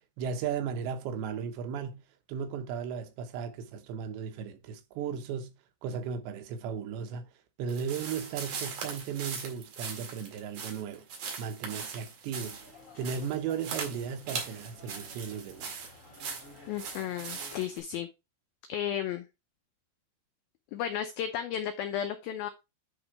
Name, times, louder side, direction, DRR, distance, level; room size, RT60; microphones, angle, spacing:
voice 1, 0.2-5.5 5.8-7.3 7.6-11.1 11.4-15.9, right 7 dB, 80° right, 3.2 m, -36 dB
sound 1, 7.7-17.8, right 5 dB, 55° right, 3.2 m, -40 dB
sound 2, 12.4-17.7, left 2 dB, 35° left, 1.2 m, -53 dB
voice 2, 16.7-18.1 18.7-19.3 20.7-22.5, left 10 dB, 85° left, 2.0 m, -33 dB
10.0 x 3.9 x 4.7 m
omnidirectional pair, 5.2 m